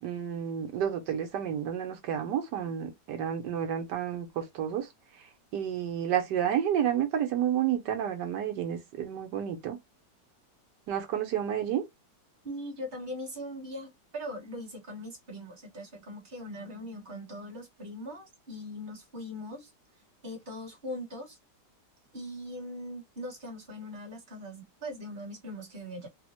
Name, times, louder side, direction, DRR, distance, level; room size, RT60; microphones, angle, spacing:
voice 1, 0.0-4.9 5.5-9.8 10.9-11.8, right 9 dB, 75° right, 1.5 m, -30 dB
voice 2, 12.4-19.7 20.2-21.4 22.1-26.1, equal, 30° right, 1.3 m, -40 dB
3.8 x 2.1 x 2.9 m
omnidirectional pair, 1.9 m